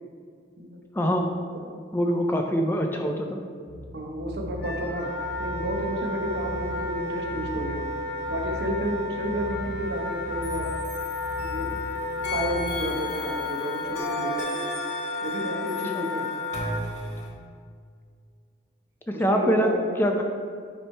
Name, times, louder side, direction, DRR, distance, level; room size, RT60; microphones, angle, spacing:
voice 1, 1.0-1.3 1.9-3.4 15.9-16.0 19.1-19.7 20.0-20.2, equal, 10° left, 3 dB, 0.4 m, -24 dB
sound 1, 3.7-12.9, equal, 10° right, 1.0 m, -39 dB
voice 2, 3.9-5.1 5.4-7.9 8.3-10.7 11.4-12.0 12.3-14.5 15.2-16.3 19.1-19.8, equal, 60° right, 1 dB, 0.8 m, -31 dB
Wind instrument woodwind instrument, 4.6-16.8, left 2 dB, 60° left, 0.6 m, -32 dB
sound 2, 10.4-11.8 12.2-17.3, left 1 dB, 85° left, 1.3 m, -36 dB
8.9 x 3.1 x 4.5 m, 2.1 s
head